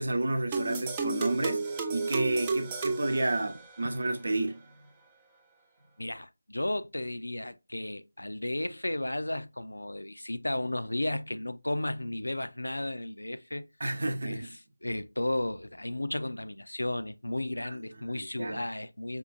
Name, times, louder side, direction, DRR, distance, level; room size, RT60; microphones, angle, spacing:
voice 1, 0.0-4.6 13.8-14.5 17.6-17.8 18.1-18.6, right 2 dB, 60° right, 0.7 m, -31 dB
sound 1, 0.5-4.0, right 4 dB, 15° right, 0.3 m, -33 dB
voice 2, 6.0-13.7 14.1-14.6 14.8-19.2, left 1 dB, 80° left, 0.4 m, -34 dB
5.3 x 2.5 x 2.3 m
figure-of-eight pair, 165°, 0 cm